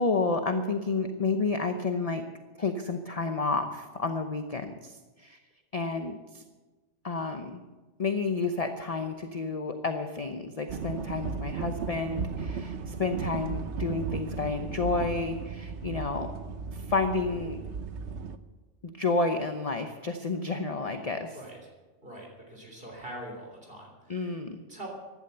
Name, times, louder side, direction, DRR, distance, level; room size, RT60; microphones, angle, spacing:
voice 1, 0.0-2.2 2.6-5.4 5.7-6.4 7.0-7.6 8.0-16.3 16.7-17.6 18.8-21.3 24.1-24.6, left 3 dB, 35° left, 6 dB, 0.9 m, -30 dB
sound 1, 10.7-18.4, right 5 dB, 70° right, 1.1 m, -35 dB
voice 2, 15.8-16.1 21.3-21.6 22.0-24.4 24.7-24.9, right 1 dB, 50° right, 0 dB, 3.6 m, -44 dB
15.5 x 11.0 x 6.8 m, 1.3 s
omnidirectional pair, 1.2 m